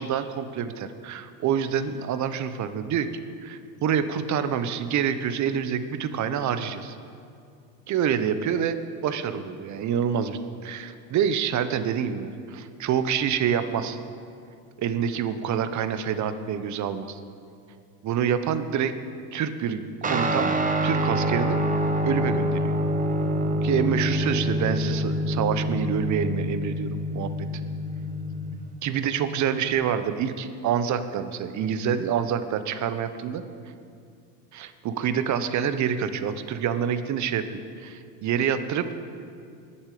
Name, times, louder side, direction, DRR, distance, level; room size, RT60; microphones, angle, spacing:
voice 1, 0.0-7.0 7.9-14.0 14.8-17.2 18.0-18.9 19.3-20.6 20.8-21.6 22.0-22.7 23.6-27.3 28.8-33.4 34.5-38.9, right 8 dB, 40° right, 11 dB, 1.0 m, -27 dB
Guitar, 20.0-29.7, equal, 15° right, 1.1 m, -26 dB
21.0 x 7.3 x 5.0 m, 2.4 s
supercardioid pair, 105°, 46 cm